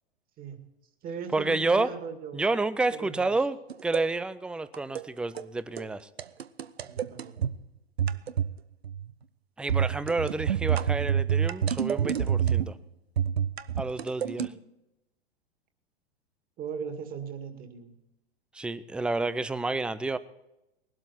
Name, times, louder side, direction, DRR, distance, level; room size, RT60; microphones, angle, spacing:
voice 1, 0.4-0.7 1.0-2.4 2.9-3.4 6.8-7.5 14.4-14.5 16.6-18.0, right 6 dB, 30° right, 6 dB, 2.3 m, -39 dB
voice 2, 1.3-1.9 2.3-6.1 9.6-12.7 13.8-14.4 18.5-20.2, right 3 dB, 5° right, 15 dB, 0.4 m, -29 dB
sound 1, 3.7-4.0 4.7-5.1 5.3-5.5 5.8-5.9 6.2-7.5 8.0-8.6 8.8-9.1 9.7-12.8 13.2-14.5, right 8 dB, 75° right, 0.8 m, -28 dB
21.0 x 12.5 x 4.3 m, 0.91 s
figure-of-eight pair, 100°, 31 cm